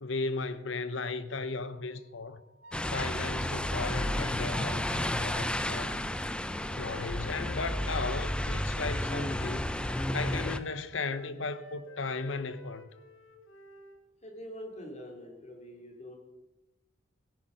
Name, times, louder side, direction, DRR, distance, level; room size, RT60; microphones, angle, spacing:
voice 1, 0.0-2.4 2.9-6.0 6.8-9.7 10.1-12.9, left 3 dB, 70° left, 1.0 m, -36 dB
Wind instrument woodwind instrument, 1.7-6.0, right 1 dB, 80° right, 2.2 m, -52 dB
sound 1, 2.7-10.6, left 1 dB, 5° left, 0.6 m, -32 dB
Wind instrument woodwind instrument 2, 5.5-9.6 9.8-14.0, left 3 dB, 85° left, 1.8 m, -50 dB
voice 2, 14.2-16.2, equal, 35° left, 3.2 m, -44 dB
16.5 x 10.0 x 6.5 m
head